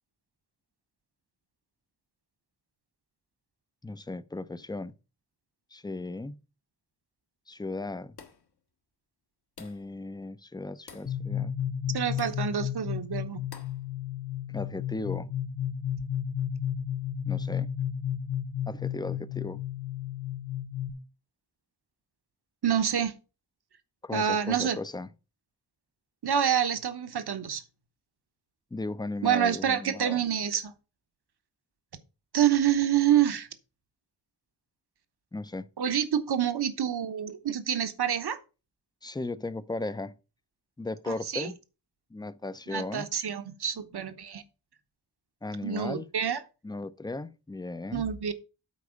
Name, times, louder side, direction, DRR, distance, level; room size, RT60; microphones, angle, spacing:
voice 1, 3.8-4.9 5.7-6.4 7.5-8.2 9.6-11.5 14.5-15.3 17.3-17.7 18.7-19.6 24.0-25.1 28.7-30.2 35.3-35.7 39.0-40.1 40.8-41.6 42.1-43.1 45.4-46.1 46.6-48.0, left 2 dB, 10° left, 0.5 m, -36 dB
sound 1, 8.2-8.5 9.6-9.9 10.9-11.2 12.2-12.5 13.5-13.8, left 5 dB, 65° left, 1.5 m, -49 dB
sound 2, 11.1-20.9, left 9 dB, 30° left, 0.8 m, -33 dB
voice 2, 11.9-13.4 22.6-23.1 24.1-24.8 26.2-27.6 29.2-30.7 32.3-33.5 35.8-38.4 41.1-41.5 42.7-44.4 45.6-46.4 47.9-48.3, right 9 dB, 65° right, 1.1 m, -27 dB
8.4 x 4.8 x 6.3 m
wide cardioid pair, 120°, 42 cm